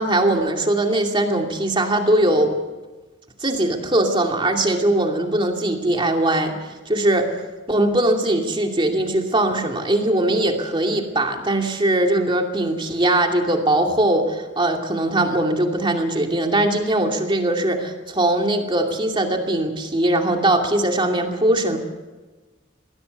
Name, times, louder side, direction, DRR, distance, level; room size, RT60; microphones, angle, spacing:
voice 1, 0.0-2.5 3.4-6.6 6.9-7.3 7.7-21.8, right 1 dB, 25° right, 3 dB, 2.6 m, -20 dB
21.5 x 17.0 x 8.2 m, 1.2 s
head